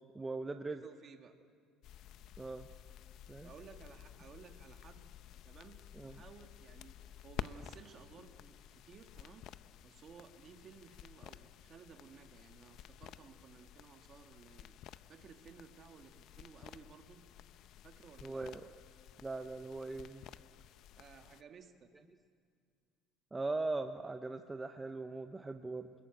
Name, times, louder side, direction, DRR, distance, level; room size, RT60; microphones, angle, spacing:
voice 1, 0.1-0.8 2.4-2.7 3.3-3.5 6.0-6.2 18.2-18.7 19.2-20.2 23.3-25.9, right 3 dB, 10° right, 7 dB, 0.6 m, -40 dB
voice 2, 0.8-1.4 2.8-2.9 3.4-5.1 5.4-17.2 17.8-18.4 21.0-21.9, right 6 dB, 30° right, 5 dB, 1.7 m, -57 dB
sound 1, 1.8-21.4, left 11 dB, 50° left, 0.6 m, -52 dB
29.5 x 21.0 x 9.0 m, 2.2 s
cardioid pair, 165°, 0 cm